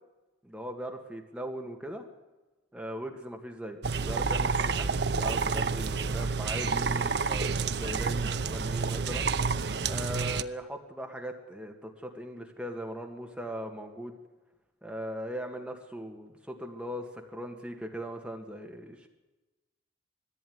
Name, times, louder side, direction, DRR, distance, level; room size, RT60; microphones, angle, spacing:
voice 1, 0.4-2.1 2.7-9.3 9.9-14.2 14.8-19.1, equal, 5° right, 3 dB, 1.8 m, -39 dB
sound 1, 3.8-10.4, right 4 dB, 60° right, 0.7 m, -29 dB
19.5 x 14.5 x 9.5 m, 1.1 s
head